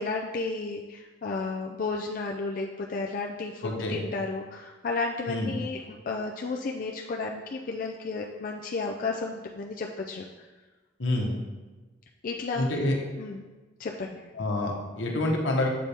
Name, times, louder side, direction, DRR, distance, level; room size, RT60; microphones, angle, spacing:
voice 1, 0.0-10.2 12.2-12.7 13.2-13.4 13.8-14.2, left 3 dB, 45° left, 0 dB, 0.4 m, -33 dB
voice 2, 3.6-4.0 5.3-5.5 11.0-11.4 12.6-12.9 14.4-15.7, left 1 dB, 80° left, 0 dB, 1.1 m, -27 dB
7.5 x 4.2 x 3.4 m, 1.2 s
head